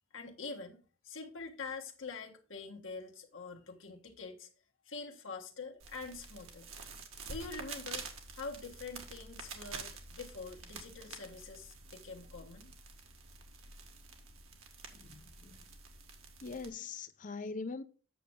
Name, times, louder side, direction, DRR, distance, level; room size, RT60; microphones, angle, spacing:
voice 1, 0.1-4.5 4.9-6.7 7.3-8.0 8.3-12.7, left 4 dB, 70° left, 1.5 m, -45 dB
sound 1, 5.8-16.7, right 4 dB, 85° right, 1.6 m, -48 dB
voice 2, 15.0-15.6 16.4-17.8, left 4 dB, 35° left, 0.4 m, -42 dB
8.6 x 6.5 x 3.6 m
head